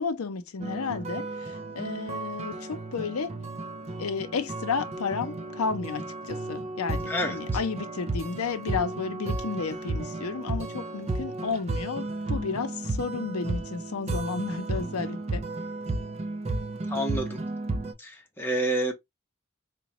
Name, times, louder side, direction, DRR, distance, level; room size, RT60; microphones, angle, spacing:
voice 1, 0.0-3.3 4.0-15.4, left 5 dB, 85° left, 0.6 m, -32 dB
sound 1, 0.6-17.9, right 2 dB, 30° right, 0.4 m, -33 dB
voice 2, 7.1-7.4 16.9-17.4 18.0-18.9, right 1 dB, 10° left, 0.8 m, -28 dB
3.8 x 2.2 x 2.8 m
head